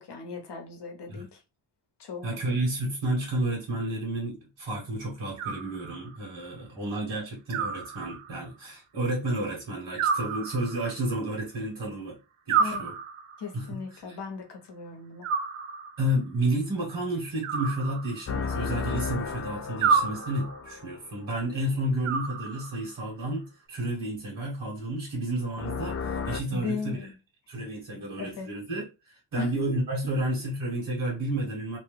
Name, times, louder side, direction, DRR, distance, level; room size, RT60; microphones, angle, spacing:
voice 1, 0.0-1.4 2.0-2.4 12.6-12.9 13.4-15.3 26.5-27.2 27.9-28.5 29.4-29.6, left 5 dB, 55° left, 1.0 m, -37 dB
voice 2, 2.2-12.2 12.5-12.9 13.5-13.8 16.0-27.0 27.5-31.8, right 1 dB, 60° right, 1.4 m, -31 dB
Animal, 5.4-6.3 7.5-8.5 10.0-11.1 12.5-13.5 15.2-16.1 17.4-18.5 19.8-20.7 22.0-22.9, right 5 dB, 90° right, 0.6 m, -30 dB
sound 1, 18.3-21.3 25.6-26.4, left 5 dB, 35° left, 0.4 m, -33 dB
2.9 x 2.2 x 3.3 m
wide cardioid pair, 95°, 49 cm